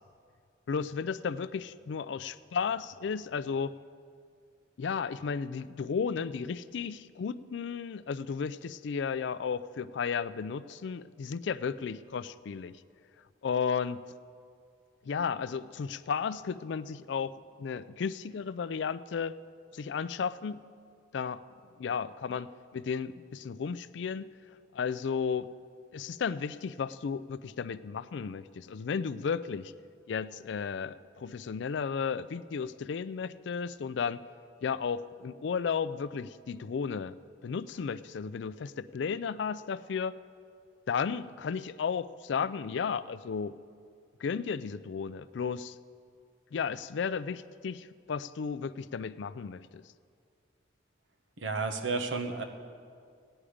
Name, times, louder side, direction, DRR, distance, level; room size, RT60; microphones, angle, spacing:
voice 1, 0.7-3.7 4.8-12.8 13.4-14.0 15.1-19.4 19.7-20.6 21.1-21.4 21.8-22.5 22.7-24.3 24.7-25.5 25.9-29.7 30.1-34.2 34.6-37.1 37.4-40.1 40.9-43.5 44.2-45.8 46.5-49.8, left 6 dB, 65° left, 15 dB, 0.4 m, -34 dB
voice 2, 51.4-52.4, right 4 dB, 75° right, 6 dB, 1.1 m, -32 dB
16.5 x 9.8 x 5.0 m, 2.2 s
head